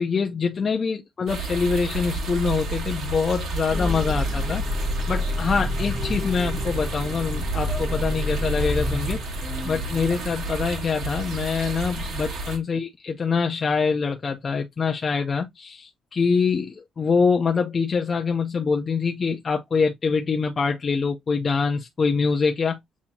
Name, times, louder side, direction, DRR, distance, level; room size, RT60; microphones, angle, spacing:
voice 1, 0.0-4.6 5.1-9.2 9.6-22.8, left 5 dB, 25° left, 0.5 m, -24 dB
sound 1, 1.3-12.6, right 2 dB, 60° right, 2.0 m, -31 dB
sound 2, 3.7-11.0, left 2 dB, ahead, 1.3 m, -29 dB
7.1 x 2.7 x 2.7 m
cardioid pair, 180°, 0 cm